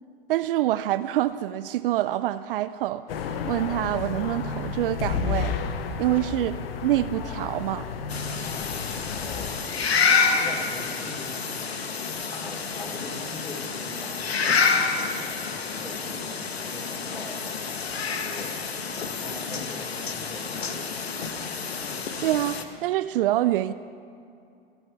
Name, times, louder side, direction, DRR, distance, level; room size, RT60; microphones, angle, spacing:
voice 1, 0.3-3.1 3.5-5.6 6.0-7.9 22.2-23.7, right 14 dB, 60° right, 13 dB, 0.5 m, -26 dB
sound 1, 3.1-9.6, left 6 dB, 70° left, 1.1 m, -32 dB
sound 2, 8.1-22.6, left 5 dB, 85° left, 1.3 m, -28 dB
voice 2, 9.1-9.6 10.2-11.6 11.9-12.0 12.3-15.2 15.7-17.6 18.1-18.5 18.8-21.3, left 1 dB, 15° left, -1 dB, 5.0 m, -42 dB
27.5 x 11.0 x 4.7 m, 2.5 s
hypercardioid pair, 100°, 30 cm